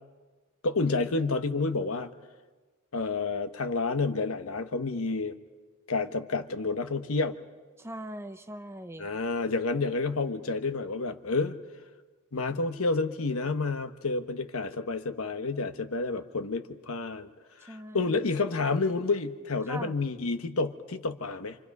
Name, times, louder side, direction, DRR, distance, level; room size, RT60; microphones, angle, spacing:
voice 1, 0.6-2.1 2.9-5.3 5.9-7.4 9.0-11.6 12.3-17.3 17.6-21.6, left 3 dB, 70° left, 9 dB, 1.1 m, -29 dB
voice 2, 7.8-9.1 17.7-18.3 19.6-20.0, right 1 dB, 10° right, 9 dB, 0.8 m, -41 dB
27.5 x 27.0 x 5.4 m, 1.3 s
head